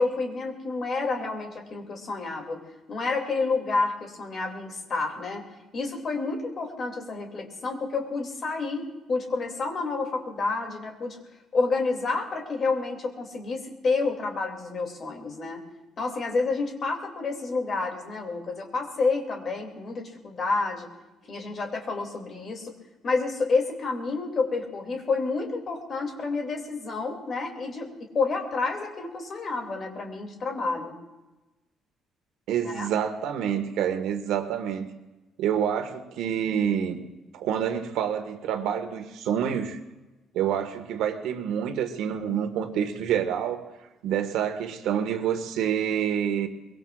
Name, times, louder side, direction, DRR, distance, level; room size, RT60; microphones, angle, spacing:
voice 1, 0.0-2.6 2.9-5.4 5.7-11.2 11.5-15.6 16.0-20.9 21.3-22.7 23.0-27.9 28.1-31.0 32.6-32.9, left 3 dB, 35° left, 2 dB, 2.6 m, -29 dB
voice 2, 32.5-34.9 35.4-37.0 37.3-39.8 40.3-43.6 44.0-46.5, right 9 dB, 90° right, 6 dB, 1.6 m, -27 dB
23.5 x 22.0 x 2.5 m, 1.1 s
cardioid pair, 170°, 0 cm